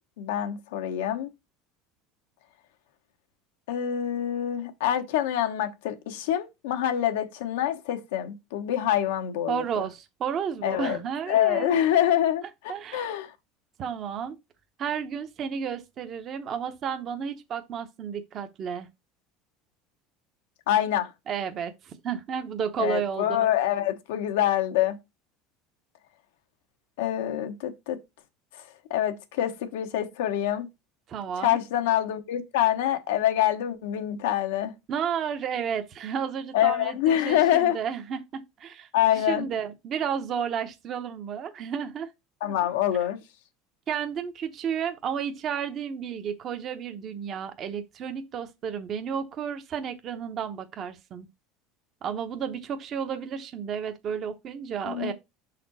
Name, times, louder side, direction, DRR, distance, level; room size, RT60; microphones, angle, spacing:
voice 1, 0.2-1.3 3.7-9.6 10.6-11.0 11.3-12.4 12.9-13.3 20.7-21.1 22.8-25.0 27.0-28.0 28.5-28.6 28.9-30.7 31.4-34.7 36.5-37.8 38.9-39.5 42.4-43.2 54.8-55.1, left 11 dB, 90° left, 1.0 m, -25 dB
voice 2, 9.5-11.8 12.7-13.1 13.8-14.3 14.8-18.9 21.3-23.3 31.1-31.6 34.9-38.9 39.2-42.1 43.9-51.3 52.0-55.1, right 7 dB, 40° right, 0.8 m, -32 dB
6.3 x 4.2 x 4.0 m
supercardioid pair, 130°, 0 cm